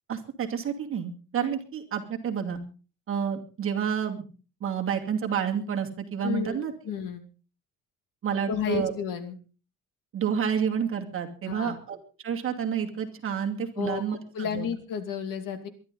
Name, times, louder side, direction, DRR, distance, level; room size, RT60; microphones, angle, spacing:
voice 1, 0.1-2.6 3.1-4.2 4.6-6.7 8.2-8.9 10.1-12.0 12.2-14.7, right 7 dB, 40° right, 2 dB, 2.6 m, -29 dB
voice 2, 6.2-6.6 6.8-7.3 8.5-9.4 11.5-11.8 13.8-15.7, left 6 dB, 70° left, 9 dB, 2.5 m, -32 dB
23.0 x 11.5 x 3.9 m, 0.36 s
cardioid pair, 160°, 34 cm